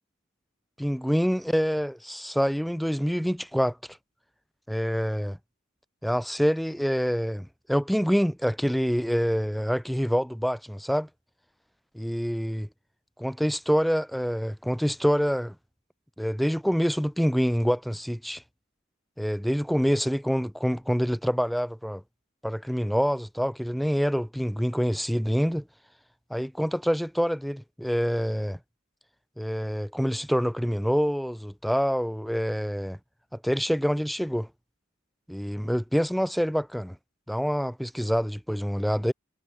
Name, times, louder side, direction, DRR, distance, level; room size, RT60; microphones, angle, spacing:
voice 1, 0.8-3.8 4.7-5.4 6.0-11.1 11.9-12.7 13.2-15.5 16.2-18.4 19.2-22.0 22.4-25.6 26.3-28.6 29.4-33.0 33.3-34.5 35.3-37.0 37.3-39.1, equal, ahead, 0.7 m, -26 dB
head